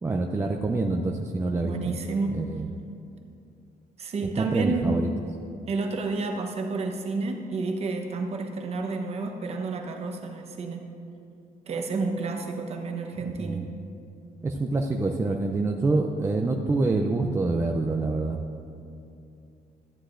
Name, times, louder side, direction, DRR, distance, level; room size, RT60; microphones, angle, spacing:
voice 1, 0.0-1.9 2.3-2.7 4.4-5.1 13.4-13.7 14.4-18.4, right 3 dB, 15° right, 2 dB, 0.4 m, -26 dB
voice 2, 1.6-2.4 4.0-5.1 5.7-10.9 11.7-13.7, right 3 dB, 40° right, 3 dB, 0.9 m, -30 dB
14.0 x 9.7 x 2.5 m, 2.6 s
cardioid pair, 160°, 16 cm